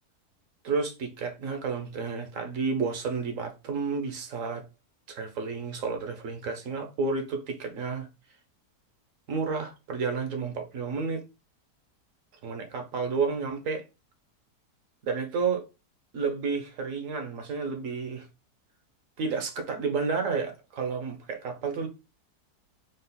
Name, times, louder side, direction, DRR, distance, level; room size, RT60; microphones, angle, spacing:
voice 1, 0.6-4.6 5.1-8.1 9.3-11.2 12.4-13.8 15.0-15.6 16.1-18.3 19.2-21.9, right 4 dB, 60° right, 1.1 m, -31 dB
4.0 x 2.4 x 3.9 m
omnidirectional pair, 1.8 m